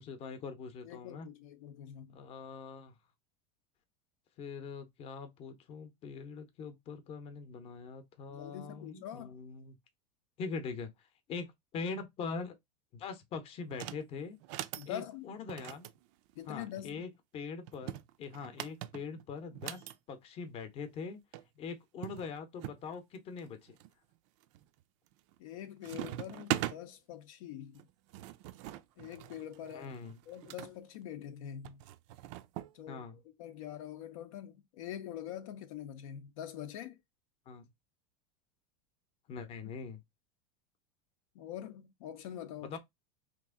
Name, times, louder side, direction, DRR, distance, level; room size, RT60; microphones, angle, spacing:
voice 1, 0.0-1.3 2.1-2.9 4.4-9.8 10.4-10.9 11.3-12.6 12.9-14.4 14.9-15.9 16.5-21.2 21.6-23.8 29.7-30.2 32.9-33.2 37.5-37.7 39.3-40.0 42.6-42.8, left 5 dB, 35° left, 0.7 m, -42 dB
voice 2, 0.8-2.2 8.3-9.3 14.7-15.3 16.4-17.1 25.4-27.8 29.0-29.9 30.3-31.8 32.7-37.0 41.3-42.8, left 10 dB, 75° left, 0.6 m, -44 dB
sound 1, 13.7-14.0 14.4-14.9 15.5-16.9 17.7-19.9 21.0-21.1 21.3-21.4 22.0-22.8 23.4-23.9 24.4-24.8 25.1-25.5 25.8-26.8 27.7-30.7 31.6-32.7, right 14 dB, 55° right, 0.4 m, -41 dB
3.0 x 2.5 x 3.5 m
supercardioid pair, 145°, 18 cm